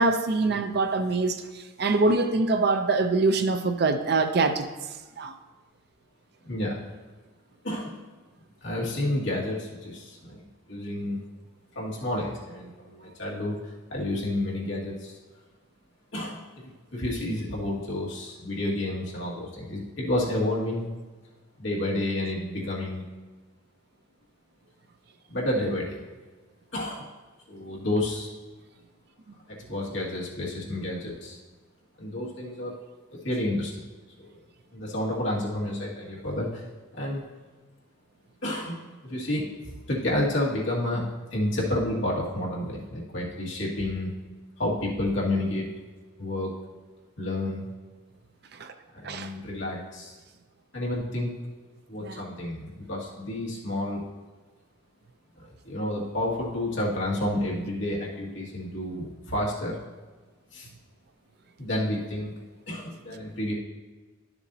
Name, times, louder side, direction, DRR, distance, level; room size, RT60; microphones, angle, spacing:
voice 1, 0.0-4.7 5.2-5.3 48.6-48.7 49.0-49.3 52.0-52.2, right 3 dB, 50° right, 0.5 m, -24 dB
voice 2, 6.4-6.8 7.6-8.0 8.6-10.4 10.7-11.2 11.8-13.6 13.9-15.2 16.1-20.9 21.6-23.1 25.3-26.0 26.7-27.1 27.5-28.3 29.5-31.4 32.0-32.8 33.2-33.8 34.2-34.4 34.7-36.6 36.9-37.2 38.4-41.0 41.3-44.1 44.6-45.7 46.2-46.5 47.2-47.7 48.9-50.1 50.7-51.3 51.9-54.0 55.4-59.8 60.5-60.7 61.6-62.3 62.7-63.5, left 1 dB, 60° left, 1.9 m, -30 dB
11.5 x 6.9 x 2.7 m
head